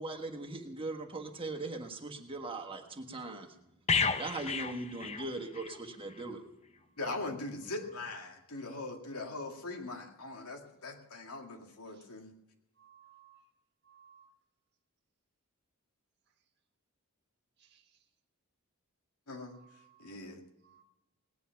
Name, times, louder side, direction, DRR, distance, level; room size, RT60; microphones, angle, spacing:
voice 1, 0.0-3.5 4.2-6.4, right 2 dB, 25° right, 4 dB, 1.5 m, -40 dB
sound 1, 3.9-5.8 6.1-6.3, left 5 dB, 30° left, 0.7 m, -32 dB
voice 2, 7.0-12.3 19.3-19.6 20.0-20.4, left 2 dB, 85° left, 3 dB, 2.2 m, -41 dB
voice 3, 12.8-13.4 13.9-14.3 19.5-20.1 20.6-20.8, right 9 dB, 50° right, 6 dB, 1.6 m, -61 dB
18.5 x 9.9 x 5.8 m, 0.93 s
head